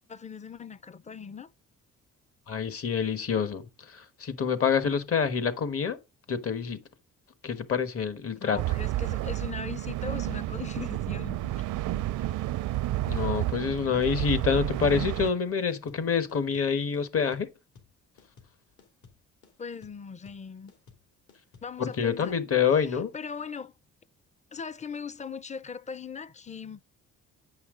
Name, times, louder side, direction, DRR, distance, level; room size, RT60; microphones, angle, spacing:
voice 1, 0.1-1.5 8.4-11.4 19.6-20.7 21.6-22.3 23.1-23.7 24.5-26.8, left 6 dB, 25° left, 0.5 m, -39 dB
voice 2, 2.5-6.0 6.3-6.8 7.4-8.6 13.0-17.5 21.8-23.1, left 6 dB, 50° left, 1.3 m, -27 dB
sound 1, 8.6-15.3, right 15 dB, 80° right, 0.5 m, -30 dB
sound 2, 12.3-22.1, left 5 dB, 70° left, 2.9 m, -57 dB
9.0 x 5.7 x 3.7 m
cardioid pair, 90°, 30 cm